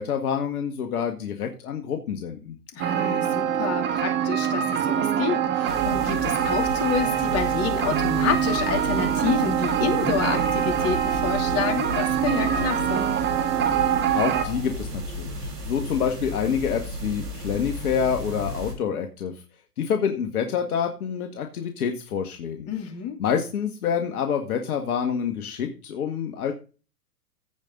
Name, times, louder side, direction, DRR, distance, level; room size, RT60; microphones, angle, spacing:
voice 1, 0.0-2.6 14.1-19.4 19.8-22.7 23.2-26.5, left 7 dB, 65° left, 5 dB, 1.8 m, -27 dB
voice 2, 2.7-13.1 22.7-23.2, left 7 dB, 30° left, 4 dB, 2.9 m, -29 dB
sound 1, 2.8-14.4, right 9 dB, 25° right, 1.4 m, -24 dB
sound 2, 5.7-18.7, right 2 dB, 80° right, 6.1 m, -32 dB
16.0 x 5.4 x 3.8 m, 0.33 s
hypercardioid pair, 115°, 47 cm